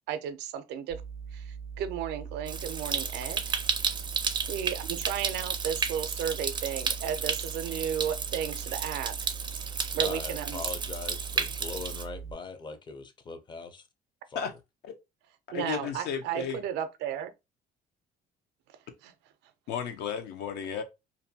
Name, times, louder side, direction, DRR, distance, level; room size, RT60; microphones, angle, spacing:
voice 1, 0.1-1.0 1.3-3.6 4.5-9.1 9.9-10.6 15.5-17.3 19.0-19.1, right 9 dB, 85° right, 0.5 m, -34 dB
sound 1, 0.9-12.3, right 6 dB, 55° left, 1.1 m, -41 dB
Stream, 2.5-12.0, right 6 dB, 25° right, 0.4 m, -33 dB
voice 2, 10.0-13.8 14.3-14.5, left 4 dB, 25° left, 0.5 m, -41 dB
voice 3, 15.5-16.6 19.7-20.8, left 7 dB, 75° left, 0.7 m, -34 dB
2.6 x 2.2 x 2.6 m
cardioid pair, 110°, 17 cm